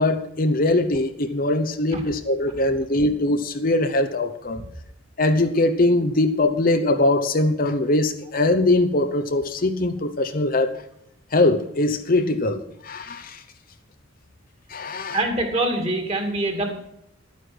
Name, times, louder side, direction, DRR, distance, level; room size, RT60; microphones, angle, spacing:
voice 1, 0.0-4.6 5.2-10.7 11.3-13.4 14.7-15.2, left 2 dB, 40° left, 8 dB, 0.9 m, -21 dB
voice 2, 15.1-16.7, right 2 dB, 30° right, 4 dB, 2.6 m, -24 dB
12.0 x 9.5 x 6.2 m, 0.78 s
head